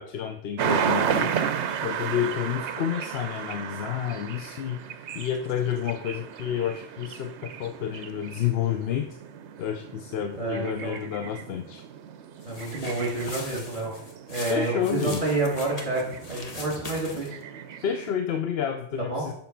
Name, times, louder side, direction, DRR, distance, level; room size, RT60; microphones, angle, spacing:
voice 1, 0.0-1.5 1.8-4.8 5.1-9.2 9.6-11.8 14.5-15.2 17.8-19.3, left 9 dB, 65° left, 8 dB, 0.7 m, -30 dB
sound 1, 0.6-18.2, right 8 dB, 70° right, 0.9 m, -34 dB
voice 2, 10.4-10.9 12.4-13.9 14.3-16.0 16.3-17.4 19.1-19.3, right 2 dB, 40° right, -2 dB, 3.2 m, -28 dB
sound 2, 12.4-17.4, left 2 dB, 35° left, 1.1 m, -41 dB
7.1 x 5.6 x 5.6 m, 0.74 s
omnidirectional pair, 1.3 m